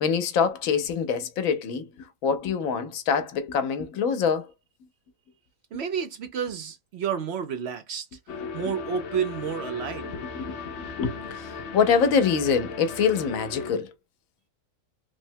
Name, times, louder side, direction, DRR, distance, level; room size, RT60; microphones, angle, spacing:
voice 1, 0.0-1.9 2.2-4.5 10.3-13.9, left 6 dB, 85° left, 1.1 m, -25 dB
voice 2, 5.7-8.1 8.5-10.2, right 7 dB, 65° right, 0.7 m, -30 dB
sound 1, 8.3-13.7, left 5 dB, 60° left, 0.9 m, -37 dB
3.3 x 2.0 x 2.6 m
omnidirectional pair, 1.4 m